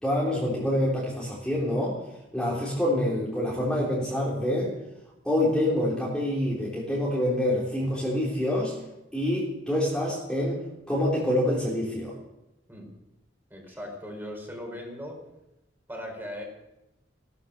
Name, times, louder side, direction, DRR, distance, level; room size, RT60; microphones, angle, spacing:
voice 1, 0.0-2.0 2.3-4.7 5.2-8.7 9.1-10.6 10.9-12.1, left 1 dB, 5° left, -6 dB, 3.5 m, -26 dB
voice 2, 13.5-15.2 15.9-16.4, equal, 10° right, 1 dB, 4.6 m, -38 dB
16.5 x 13.0 x 6.5 m, 0.90 s
head